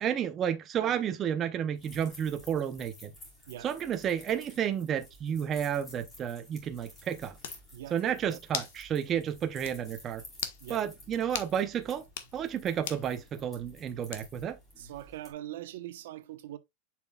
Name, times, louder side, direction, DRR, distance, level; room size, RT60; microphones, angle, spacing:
voice 1, 0.0-3.1 3.6-7.3 7.9-10.2 10.7-12.0 12.3-14.6, right 9 dB, 20° right, 0.6 m, -31 dB
sound 1, 1.7-15.3, left 1 dB, 15° left, 3.3 m, -53 dB
sound 2, 7.0-7.1 7.4-7.6 8.5-8.8 9.2-9.3 9.6-9.8 10.3-10.6 11.3-11.5 12.0-12.3 12.9-13.1 14.1-14.5, left 9 dB, 75° left, 1.2 m, -37 dB
voice 2, 14.8-16.6, right 13 dB, 75° right, 0.9 m, -42 dB
7.2 x 5.9 x 2.3 m
supercardioid pair, 170°, 0 cm